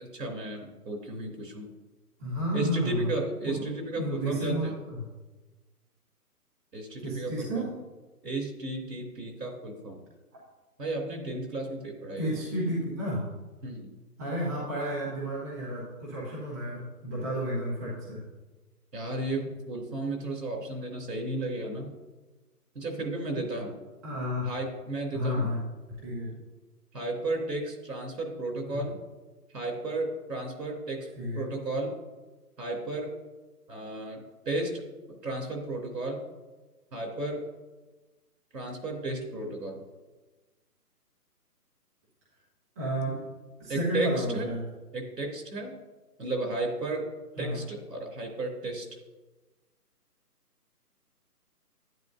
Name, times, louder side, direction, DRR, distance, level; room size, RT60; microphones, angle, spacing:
voice 1, 0.0-1.7 2.5-4.7 6.7-7.7 8.2-10.0 10.8-12.4 13.6-13.9 18.9-21.9 22.7-23.7 24.4-25.5 26.9-29.0 29.5-31.1 31.3-31.9 32.6-33.1 33.7-34.8 35.1-36.2 36.9-37.5 38.5-39.8 43.7-44.5 44.9-45.8 46.2-47.1 47.4-48.9, right 2 dB, 85° right, 1 dB, 3.3 m, -33 dB
voice 2, 2.2-3.1 3.4-3.7 3.9-5.1 7.0-7.7 12.2-13.2 14.2-18.2 24.0-24.5 25.1-25.6 26.0-26.3 28.7-28.8 31.1-31.4 42.7-43.2 43.6-44.6 47.4-47.6, equal, 10° right, -9 dB, 1.2 m, -31 dB
10.5 x 10.0 x 2.6 m, 1.2 s
hypercardioid pair, 170°, 48 cm